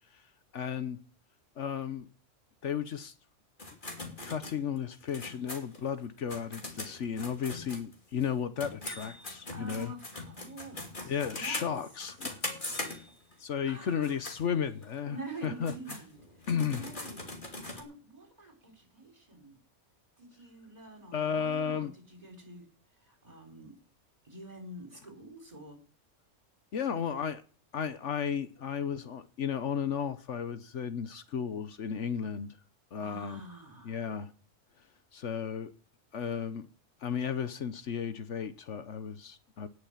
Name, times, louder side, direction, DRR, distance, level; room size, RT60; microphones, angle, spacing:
voice 1, 0.5-1.0 1.6-2.1 2.6-3.1 4.2-9.9 11.1-12.4 13.4-15.2 15.4-15.7 16.5-16.8 21.1-21.9 26.7-27.4 27.7-32.5 32.9-33.4 33.8-34.3 35.1-35.7 36.1-36.7 37.0-39.7, left 7 dB, 70° left, 1.3 m, -34 dB
sound 1, 3.6-8.3 8.6-13.3 13.9-14.4 14.8-14.9 15.4-17.8, left 2 dB, 40° left, 2.9 m, -41 dB
voice 2, 9.1-11.7 13.6-14.2 15.1-16.2 16.7-19.6 20.2-22.7 23.0-23.7 24.2-25.8 33.0-34.0, right 2 dB, 30° right, 4.2 m, -47 dB
18.5 x 6.6 x 7.3 m
omnidirectional pair, 1.3 m